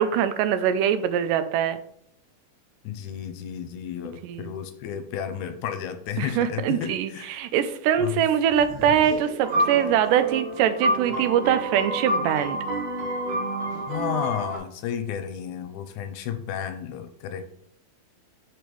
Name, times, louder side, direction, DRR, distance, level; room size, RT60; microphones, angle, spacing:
voice 1, 0.0-1.8 4.2-4.5 6.2-12.6, right 9 dB, 90° right, 11 dB, 2.2 m, -23 dB
voice 2, 2.8-7.3 8.0-8.2 13.9-17.5, left 9 dB, 80° left, 9 dB, 2.0 m, -32 dB
sound 1, 8.5-11.6 12.0-12.1 13.7-14.0, equal, 45° right, 1.9 m, -41 dB
sound 2, 9.4-14.6, right 1 dB, 70° right, 2.4 m, -28 dB
6.8 x 6.3 x 3.1 m, 0.69 s
omnidirectional pair, 3.7 m